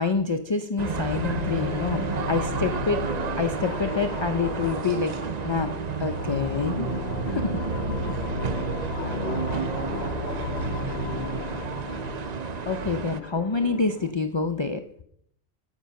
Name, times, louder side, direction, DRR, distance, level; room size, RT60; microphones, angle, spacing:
voice 1, 0.0-3.0 3.4-5.1 5.4-6.9 7.2-7.4 12.7-14.8, left 4 dB, 45° left, 7 dB, 0.3 m, -27 dB
sound 1, 0.8-14.1, left 5 dB, 65° left, 1.1 m, -34 dB
sound 2, 0.8-13.2, right 7 dB, 50° right, 0.5 m, -31 dB
voice 2, 8.3-11.8, equal, 20° right, 3 dB, 1.8 m, -44 dB
12.5 x 5.5 x 7.4 m, 0.70 s
omnidirectional pair, 1.2 m